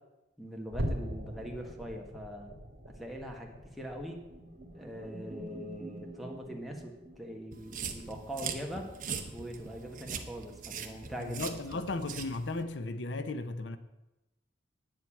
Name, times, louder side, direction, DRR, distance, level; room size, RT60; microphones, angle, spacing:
voice 1, 0.4-2.5 2.9-4.2 4.7-8.9 9.3-11.4 11.7-11.8, equal, ahead, 1.6 m, -42 dB
sound 1, 0.7-7.4 7.7-8.0 8.4-8.6 9.1-9.3, equal, 75° right, 1.9 m, -42 dB
sound 2, 4.2-7.8, right 1 dB, 30° right, 2.2 m, -47 dB
sound 3, 7.5-12.6, right 6 dB, 45° right, 1.2 m, -41 dB
voice 2, 11.2-13.8, left 2 dB, 80° left, 0.7 m, -35 dB
9.4 x 7.6 x 8.6 m
head